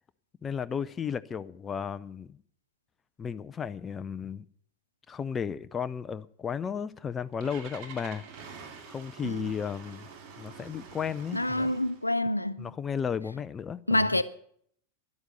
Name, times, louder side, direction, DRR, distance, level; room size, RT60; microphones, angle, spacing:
voice 1, 0.4-2.4 3.2-4.5 5.1-8.2 8.9-10.1 10.4-11.7 12.6-14.1, left 7 dB, 20° left, 0.5 m, -34 dB
Engine starting, 6.9-12.1, right 5 dB, 45° right, 2.3 m, -47 dB
voice 2, 11.3-12.7 13.9-14.2, left 1 dB, 85° left, 0.7 m, -27 dB
12.5 x 11.0 x 6.6 m
figure-of-eight pair, 90°, 0 cm